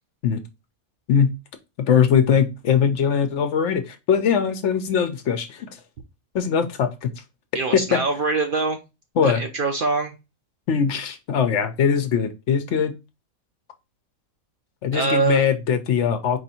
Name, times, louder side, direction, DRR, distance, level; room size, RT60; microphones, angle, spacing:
voice 1, 1.8-5.7 6.3-7.1 7.7-8.0 9.2-9.4 10.7-12.9 14.8-16.4, left 7 dB, 65° left, 9 dB, 0.9 m, -21 dB
voice 2, 7.5-8.8 9.2-10.1 14.9-15.4, right 4 dB, 55° right, 4 dB, 0.7 m, -23 dB
4.7 x 2.6 x 4.1 m, 0.26 s
omnidirectional pair, 1.4 m